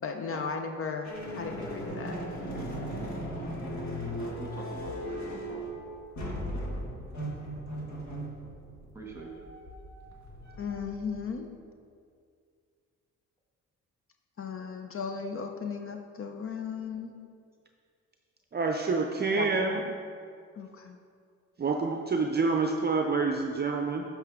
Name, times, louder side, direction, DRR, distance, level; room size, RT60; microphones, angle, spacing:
voice 1, 0.0-2.2 10.6-11.5 14.4-17.1 19.4-19.5 19.7-19.8 20.6-21.0, left 5 dB, 45° left, 4 dB, 0.7 m, -36 dB
sound 1, 1.0-11.1, equal, 65° left, 1.8 m, -38 dB
voice 2, 4.2-5.7 8.9-9.3, right 2 dB, 10° right, -2 dB, 2.1 m, -43 dB
voice 3, 18.5-19.8 21.6-24.0, right 4 dB, 35° right, 3 dB, 0.6 m, -27 dB
11.5 x 5.7 x 3.6 m, 2.3 s
cardioid pair, 90°, 30 cm